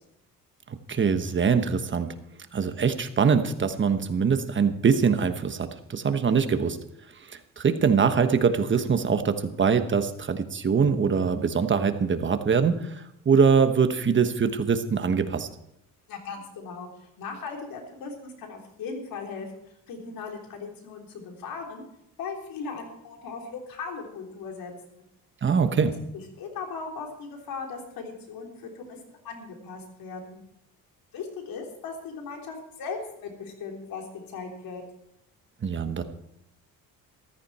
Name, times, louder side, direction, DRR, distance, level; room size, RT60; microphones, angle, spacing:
voice 1, 0.7-2.1 2.5-6.8 7.3-15.5 25.4-26.0 35.6-36.0, right 6 dB, 35° right, 9 dB, 1.2 m, -23 dB
voice 2, 16.1-21.8 22.2-25.0 26.4-30.4 31.1-34.8, left 4 dB, 75° left, 2 dB, 3.6 m, -38 dB
14.5 x 13.5 x 4.3 m, 0.78 s
cardioid pair, 120°, 35 cm